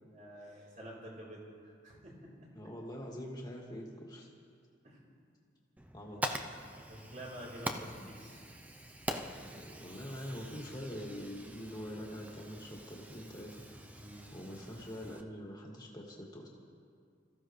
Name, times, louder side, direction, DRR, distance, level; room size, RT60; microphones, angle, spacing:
voice 1, 0.1-2.5 4.8-5.0 6.8-8.4 14.0-14.3, equal, 40° right, -5 dB, 4.0 m, -49 dB
voice 2, 2.5-4.3 5.9-6.2 9.5-13.6 14.3-16.5, equal, 20° left, -1 dB, 2.1 m, -44 dB
Fire, 5.8-15.2, right 1 dB, 10° right, 0.6 m, -44 dB
26.5 x 15.0 x 3.3 m, 2.2 s
head